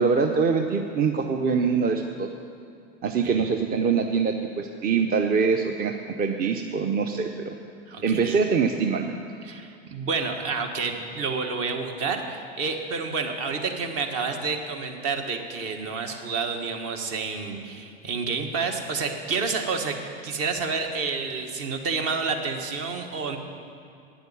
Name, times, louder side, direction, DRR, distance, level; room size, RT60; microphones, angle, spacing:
voice 1, 0.0-2.3 3.0-7.5 8.0-9.2, right 5 dB, 30° right, 5 dB, 0.7 m, -24 dB
voice 2, 7.9-8.4 9.4-20.0 20.2-23.4, right 4 dB, 50° right, 4 dB, 1.6 m, -29 dB
9.5 x 8.0 x 8.7 m, 2.5 s
hypercardioid pair, 95°, 30 cm